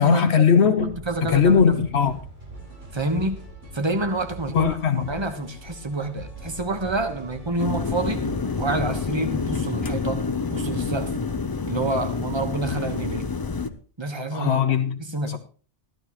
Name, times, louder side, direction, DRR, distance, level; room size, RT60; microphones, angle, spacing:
voice 1, 0.0-0.9 1.3-2.2 4.5-5.1 14.3-15.0 15.3-15.4, left 7 dB, 70° left, 1.0 m, -19 dB
sound 1, 0.7-13.7, left 1 dB, 55° right, 4.4 m, -42 dB
voice 2, 0.8-1.9 2.9-3.4 3.7-8.2 8.6-11.1 11.7-13.3 14.0-14.6 15.1-15.4, right 2 dB, 25° right, 1.2 m, -28 dB
sound 2, 2.5-9.3, right 2 dB, 85° right, 4.8 m, -43 dB
sound 3, 7.6-13.7, left 4 dB, 30° left, 0.4 m, -28 dB
14.0 x 12.0 x 3.1 m
omnidirectional pair, 1.2 m